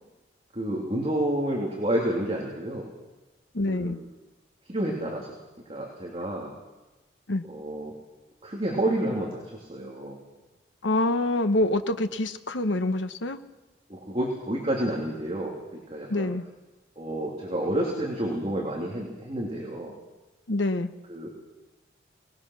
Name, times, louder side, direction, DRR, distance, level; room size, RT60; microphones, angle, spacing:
voice 1, 0.5-2.9 3.7-4.0 4.7-5.3 5.7-6.5 7.5-7.9 8.4-10.2 13.9-16.3 17.0-19.9 21.1-21.3, right 1 dB, 30° right, -2 dB, 3.0 m, -29 dB
voice 2, 3.5-4.0 7.3-7.4 10.8-13.4 16.1-16.4 20.5-20.9, left 2 dB, 85° left, 9 dB, 1.1 m, -26 dB
23.0 x 19.0 x 6.3 m, 1.1 s
head